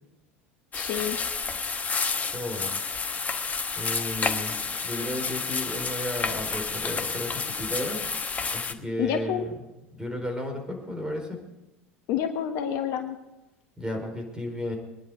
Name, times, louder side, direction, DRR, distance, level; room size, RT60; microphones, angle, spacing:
voice 1, 0.7-1.2 9.0-9.5 12.1-13.2, left 9 dB, 50° left, 6 dB, 1.3 m, -28 dB
sound 1, 0.7-8.7, left 5 dB, 20° left, 1.1 m, -30 dB
voice 2, 2.3-2.7 3.7-4.5 4.8-8.0 8.5-9.6 10.0-11.4 13.8-14.8, left 1 dB, 10° right, 3 dB, 4.5 m, -33 dB
21.5 x 10.5 x 4.9 m, 0.97 s
figure-of-eight pair, 80°, 7 cm